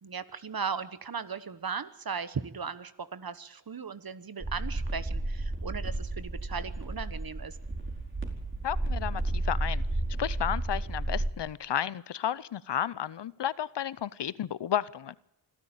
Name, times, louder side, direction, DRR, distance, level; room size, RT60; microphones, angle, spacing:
voice 1, 0.0-7.6, right 6 dB, 50° right, 14 dB, 1.3 m, -37 dB
sound 1, 4.4-11.3, right 2 dB, 25° right, 4.5 m, -32 dB
voice 2, 8.6-9.8 10.2-15.2, left 10 dB, 65° left, 20 dB, 0.7 m, -32 dB
25.0 x 12.5 x 8.9 m, 0.82 s
cardioid pair, 45°, 45 cm